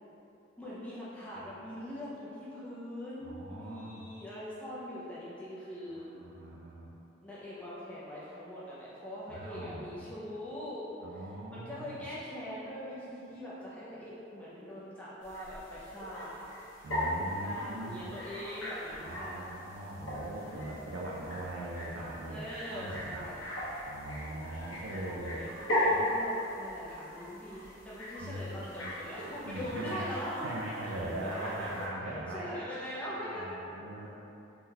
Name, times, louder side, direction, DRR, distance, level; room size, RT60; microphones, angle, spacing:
voice 1, 0.6-6.1 7.2-11.2 11.5-16.4 17.4-19.4 22.3-23.4 24.9-25.5 25.8-30.6 31.2-33.6, equal, 5° left, -9 dB, 0.4 m, -42 dB
voice 2, 3.2-4.1 5.9-6.9 9.3-10.1 11.0-12.1 16.8-18.1 19.0-23.3 23.9-25.4 25.9-26.0 28.2-28.9 29.4-30.0 30.4-32.5 33.2-34.1, right 1 dB, 70° right, -4 dB, 0.3 m, -41 dB
sound 1, 15.2-31.9, left 1 dB, 80° left, 1.0 m, -38 dB
3.6 x 2.2 x 2.8 m, 2.9 s
head